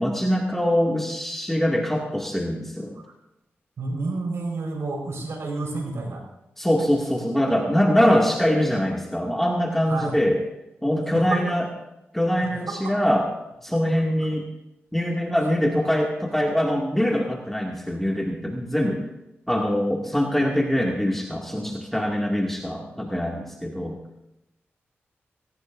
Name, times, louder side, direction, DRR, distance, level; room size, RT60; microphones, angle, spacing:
voice 1, 0.0-3.0 6.6-10.4 10.8-11.7 12.1-13.3 13.6-14.5 14.9-19.0 19.5-24.0, equal, 5° left, -1 dB, 2.3 m, -23 dB
voice 2, 3.8-6.2 9.9-10.2 11.1-11.4 12.4-13.0, right 3 dB, 80° right, 1 dB, 4.9 m, -30 dB
18.5 x 18.5 x 2.7 m, 0.92 s
cardioid pair, 60°, 5 cm